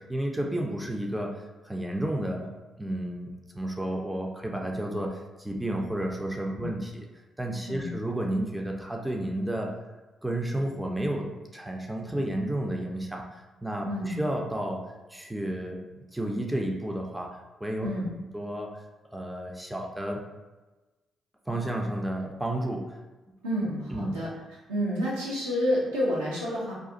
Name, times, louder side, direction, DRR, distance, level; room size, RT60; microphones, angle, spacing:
voice 1, 0.0-1.3 1.6-3.3 3.5-7.0 7.4-9.7 10.2-13.2 13.6-14.8 15.1-17.9 18.3-18.7 19.1-20.2 21.5-23.0 23.9-24.2, right 1 dB, 10° right, 1 dB, 0.5 m, -31 dB
voice 2, 13.9-14.2 17.8-18.1 23.4-24.3 24.7-26.7, equal, 90° right, -9 dB, 0.9 m, -29 dB
2.4 x 2.4 x 3.9 m, 1.2 s
hypercardioid pair, 40°, 0 cm